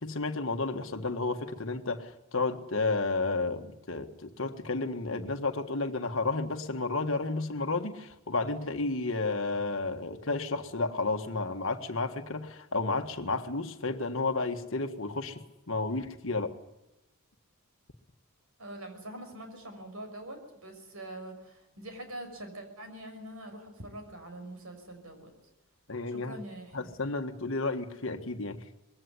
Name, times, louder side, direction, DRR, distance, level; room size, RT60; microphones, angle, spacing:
voice 1, 0.0-15.4 15.7-16.6 25.9-26.4 26.7-28.6, left 3 dB, 60° left, 1.7 m, -32 dB
voice 2, 18.6-25.3 26.1-26.9, right 1 dB, 70° right, 5.9 m, -44 dB
21.5 x 16.5 x 9.7 m
head